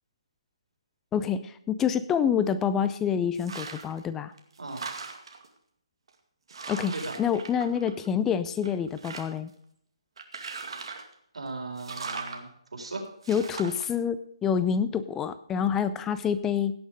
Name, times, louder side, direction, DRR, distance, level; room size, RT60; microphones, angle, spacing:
voice 1, 1.1-4.3 6.7-9.5 13.3-16.7, left 7 dB, 10° left, 13 dB, 0.4 m, -27 dB
sound 1, 3.3-4.0 4.4-5.5 6.1-6.2 6.5-8.2 8.6-9.5 10.2-11.1 11.8-12.4 13.2-13.8, right 4 dB, 60° right, 2.2 m, -39 dB
voice 2, 11.3-13.0, right 3 dB, 80° right, 2 dB, 4.3 m, -37 dB
17.5 x 6.3 x 5.1 m, 0.70 s
hypercardioid pair, 160°, 3 cm